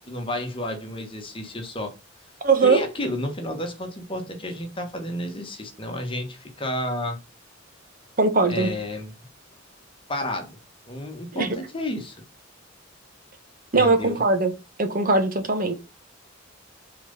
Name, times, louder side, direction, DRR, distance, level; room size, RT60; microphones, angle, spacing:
voice 1, 0.1-1.9 2.6-7.2 8.5-9.1 10.1-10.5 10.9-12.1 13.7-14.2, left 1 dB, 25° left, 1.5 m, -31 dB
voice 2, 2.4-2.8 8.2-8.7 11.3-11.5 13.7-14.5 14.8-15.7, right 3 dB, 45° right, 1.2 m, -20 dB
6.0 x 4.0 x 5.4 m
head